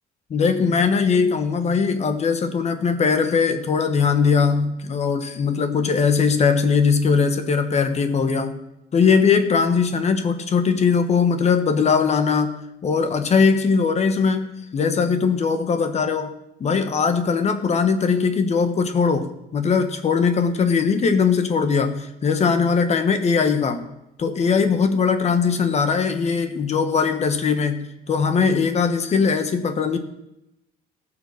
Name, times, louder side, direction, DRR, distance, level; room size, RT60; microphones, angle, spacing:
voice 1, 0.3-8.6 8.9-12.5 12.8-16.3 16.6-23.8 24.2-30.0, left 5 dB, 40° left, 8 dB, 1.2 m, -20 dB
16.0 x 5.9 x 6.7 m, 0.90 s
cardioid pair, 110°, 17 cm